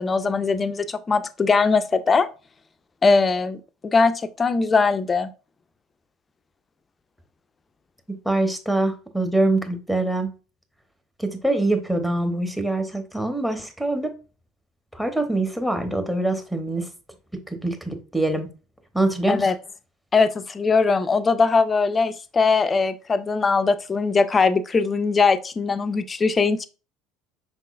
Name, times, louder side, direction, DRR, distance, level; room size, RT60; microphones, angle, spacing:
voice 1, 0.0-2.3 3.0-5.3 19.3-19.6 20.1-26.7, left 4 dB, 25° left, 0.4 m, -21 dB
voice 2, 8.2-10.3 11.2-14.1 14.9-16.9 17.3-18.5 18.9-19.5, right 2 dB, 5° right, 0.9 m, -24 dB
5.6 x 3.7 x 2.4 m
figure-of-eight pair, 65°, 0 cm